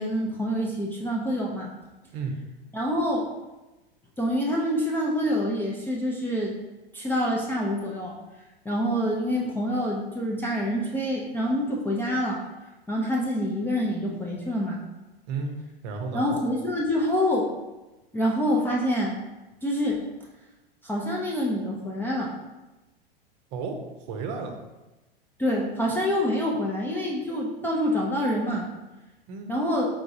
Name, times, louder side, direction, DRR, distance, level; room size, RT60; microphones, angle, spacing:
voice 1, 0.0-1.7 2.7-3.3 4.2-6.5 6.9-8.2 8.6-12.4 12.9-14.8 16.1-17.5 18.1-19.2 19.6-20.0 20.8-22.3 25.4-28.7 29.5-29.9, equal, 5° left, -4 dB, 0.4 m, -26 dB
voice 2, 15.8-16.3 23.5-24.6 29.3-29.5, right 4 dB, 40° right, 4 dB, 0.7 m, -32 dB
4.7 x 3.7 x 2.6 m, 1.1 s
figure-of-eight pair, 95°, 30 cm